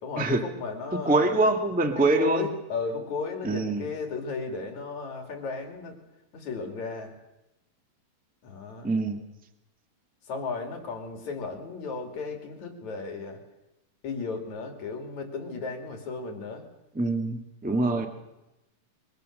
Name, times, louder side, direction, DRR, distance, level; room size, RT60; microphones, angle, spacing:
voice 1, 0.0-1.5 2.0-6.0 6.3-7.2 8.4-8.9 10.3-13.4 14.0-16.7 17.7-18.1, left 4 dB, 55° left, 4 dB, 3.8 m, -35 dB
voice 2, 1.0-2.4 3.4-3.9 8.8-9.2 16.9-18.1, right 2 dB, 10° right, 6 dB, 0.5 m, -24 dB
23.5 x 23.0 x 6.6 m, 0.94 s
omnidirectional pair, 4.0 m